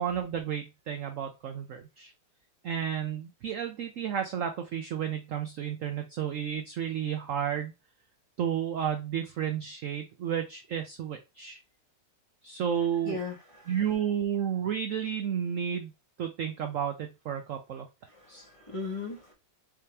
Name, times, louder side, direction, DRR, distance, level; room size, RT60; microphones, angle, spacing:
voice 1, 0.0-2.1 2.6-7.7 8.4-11.6 12.4-13.2 13.7-15.9 16.2-17.9 18.3-18.5, right 8 dB, 70° right, 0.8 m, -32 dB
voice 2, 13.0-13.7 18.3-19.3, left 4 dB, 20° left, 1.1 m, -37 dB
4.9 x 2.9 x 3.3 m
omnidirectional pair, 1.9 m